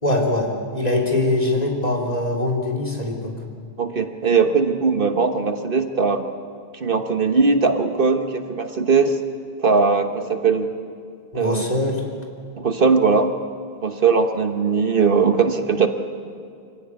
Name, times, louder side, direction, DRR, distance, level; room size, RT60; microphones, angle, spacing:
voice 1, 0.0-3.3 11.3-12.0, left 2 dB, 40° left, 0 dB, 3.6 m, -22 dB
voice 2, 3.8-6.2 6.7-9.2 9.6-10.7 11.3-11.6 12.6-13.3 13.8-15.9, right 4 dB, 60° right, 7 dB, 1.4 m, -19 dB
25.5 x 16.5 x 9.7 m, 2.3 s
omnidirectional pair, 1.0 m